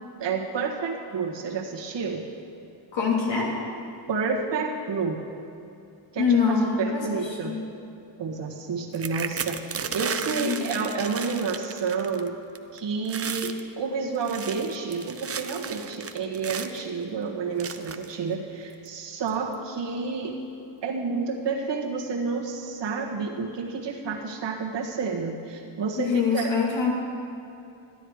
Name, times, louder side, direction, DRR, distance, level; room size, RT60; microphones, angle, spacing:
voice 1, 0.2-2.2 4.1-5.2 6.1-7.6 8.2-12.4 12.7-20.4 20.8-26.5, right 4 dB, 60° right, -1 dB, 1.6 m, -30 dB
voice 2, 2.9-3.5 6.2-7.0 7.4-7.6 10.3-10.6 26.0-26.9, left 5 dB, 65° left, -3 dB, 3.0 m, -24 dB
sound 1, 8.9-12.3 12.6-12.8 13.1-13.6 14.1-16.8 17.6-18.1 18.9-19.0 19.3-19.5, right 6 dB, 30° right, 0.6 m, -34 dB
13.0 x 9.9 x 4.8 m, 2.7 s
cardioid pair, 80°, 49 cm